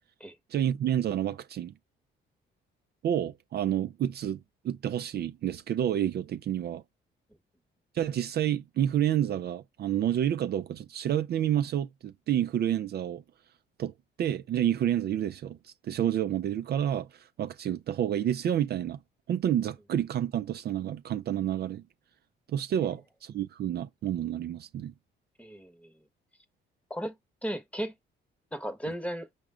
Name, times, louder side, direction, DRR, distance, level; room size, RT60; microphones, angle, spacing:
voice 1, 0.5-1.7 3.0-6.8 7.9-13.2 13.8-19.0 19.3-21.8 22.5-24.9, right 10 dB, 55° right, 0.4 m, -29 dB
voice 2, 25.4-25.9 26.9-27.1 27.4-27.9 28.5-29.3, equal, 5° left, 1.0 m, -35 dB
4.9 x 2.1 x 3.6 m
cardioid pair, 90°, 20 cm